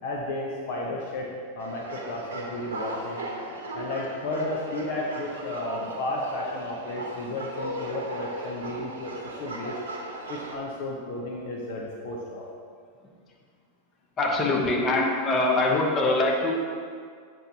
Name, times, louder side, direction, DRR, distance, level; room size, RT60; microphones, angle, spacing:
voice 1, 0.0-3.2 3.7-9.8 10.3-12.4, left 2 dB, 50° left, -2 dB, 0.8 m, -33 dB
sound 1, 1.6-10.6, right 2 dB, 65° right, 0.9 m, -37 dB
voice 2, 14.2-16.5, left 2 dB, 25° left, -1 dB, 1.1 m, -23 dB
7.8 x 6.1 x 2.9 m, 2.1 s
figure-of-eight pair, 90°, 0 cm